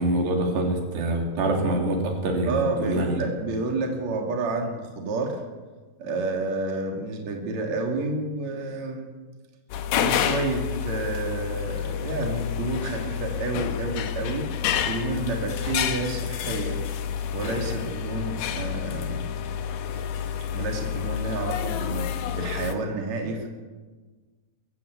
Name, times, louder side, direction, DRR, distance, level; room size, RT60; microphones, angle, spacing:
voice 1, 0.0-3.2, right 1 dB, 75° right, 1 dB, 5.1 m, -25 dB
voice 2, 2.5-5.4 6.0-9.1 10.0-14.5 14.9-16.8 17.3-19.3 20.5-23.5, right 3 dB, 45° right, 1 dB, 3.8 m, -30 dB
sound 1, 9.7-22.7, left 8 dB, 90° left, 3.5 m, -29 dB
22.5 x 16.0 x 8.3 m, 1.3 s
omnidirectional pair, 4.8 m